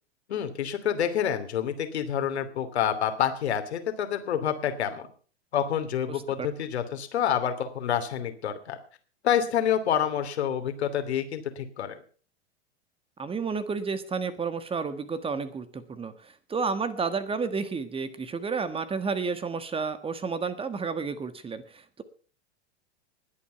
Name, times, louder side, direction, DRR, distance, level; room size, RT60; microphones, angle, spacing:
voice 1, 0.3-5.1 5.5-8.8 9.2-12.0, left 9 dB, 70° left, 8 dB, 2.9 m, -28 dB
voice 2, 13.2-22.0, right 5 dB, 15° right, 12 dB, 1.5 m, -31 dB
20.0 x 8.6 x 5.8 m, 0.42 s
hypercardioid pair, 100°, 34 cm